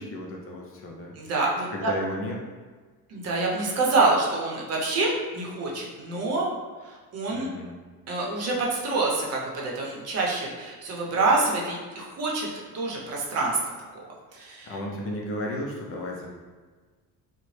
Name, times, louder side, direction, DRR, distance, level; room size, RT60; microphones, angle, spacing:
voice 1, 0.0-1.1 1.7-2.4 7.3-7.7 14.7-16.3, left 1 dB, 40° left, -1 dB, 0.6 m, -34 dB
voice 2, 1.2-1.9 3.1-6.5 6.8-7.5 8.1-12.5 12.7-13.6 14.3-14.7, right 3 dB, 45° right, -3 dB, 0.8 m, -26 dB
3.8 x 2.1 x 3.2 m, 1.4 s
cardioid pair, 140°, 35 cm